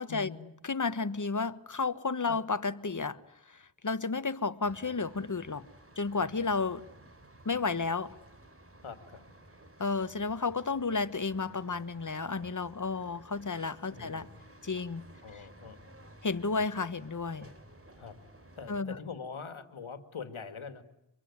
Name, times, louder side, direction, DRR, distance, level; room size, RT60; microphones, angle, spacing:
voice 1, 0.1-0.5 2.3-2.4 6.3-6.6 8.8-9.3 13.9-14.3 15.2-15.9 17.9-18.2 18.6-20.8, left 5 dB, 80° left, 2.3 m, -44 dB
voice 2, 0.6-3.2 3.5-5.7 6.0-6.8 7.4-8.1 9.8-14.3 14.6-15.1 16.2-17.5 18.7-18.9, left 4 dB, 40° left, 1.4 m, -32 dB
sound 1, 4.6-18.8, right 1 dB, 30° right, 3.2 m, -55 dB
25.0 x 23.5 x 9.7 m
cardioid pair, 45°, 48 cm